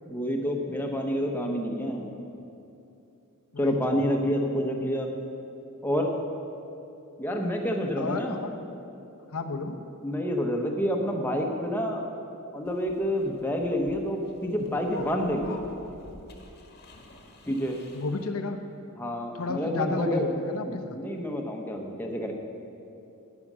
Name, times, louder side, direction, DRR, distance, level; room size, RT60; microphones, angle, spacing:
voice 1, 0.1-2.1 3.6-5.1 5.8-6.1 7.2-8.4 10.0-12.1 12.5-15.6 17.5-17.8 19.0-20.3 20.7-22.3, equal, 10° left, 1 dB, 1.0 m, -28 dB
voice 2, 3.5-4.1 8.0-8.5 9.3-9.8 17.9-18.6 19.3-21.0, left 3 dB, 90° left, 7 dB, 0.9 m, -32 dB
sound 1, 12.7-18.3, left 1 dB, 50° left, 1.3 m, -44 dB
9.8 x 9.5 x 6.2 m, 2.7 s
head